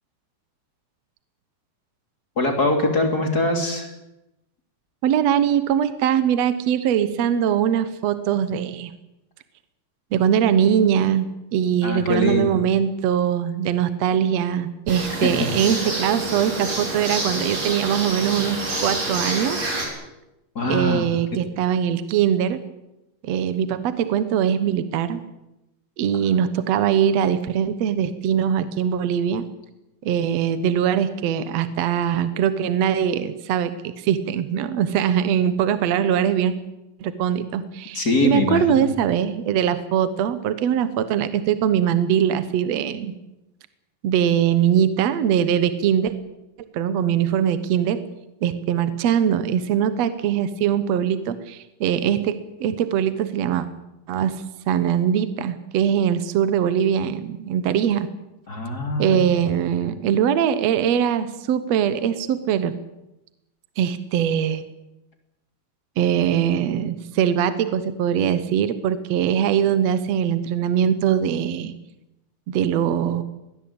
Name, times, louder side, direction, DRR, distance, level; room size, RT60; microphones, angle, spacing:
voice 1, 2.4-3.9 11.8-12.5 15.2-15.4 20.5-21.1 37.9-38.9 58.5-59.2, left 2 dB, 25° left, 4 dB, 3.0 m, -22 dB
voice 2, 5.0-8.9 10.1-19.6 20.7-22.6 23.2-25.2 26.0-29.5 30.0-36.6 37.0-43.1 44.0-46.1 46.7-48.0 48.4-53.7 54.1-54.4 54.7-58.1 59.0-62.7 63.8-64.6 66.0-71.7 72.5-73.2, right 9 dB, 65° right, 12 dB, 1.7 m, -22 dB
sound 1, 14.9-19.9, right 2 dB, 40° right, 6.0 m, -28 dB
21.5 x 18.5 x 8.7 m, 0.93 s
omnidirectional pair, 4.3 m